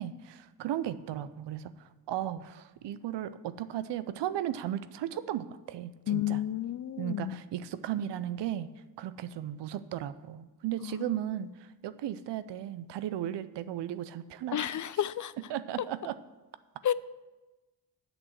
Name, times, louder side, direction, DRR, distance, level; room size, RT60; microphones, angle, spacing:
voice 1, 0.0-6.4 7.0-8.7 9.0-14.7 15.5-16.2, right 11 dB, 85° right, 14 dB, 0.6 m, -35 dB
voice 2, 6.1-7.4 10.8-11.1 14.5-15.3 16.8-16.9, left 11 dB, 50° left, 17 dB, 0.4 m, -31 dB
7.9 x 6.2 x 7.3 m, 1.1 s
cardioid pair, 50°, 41 cm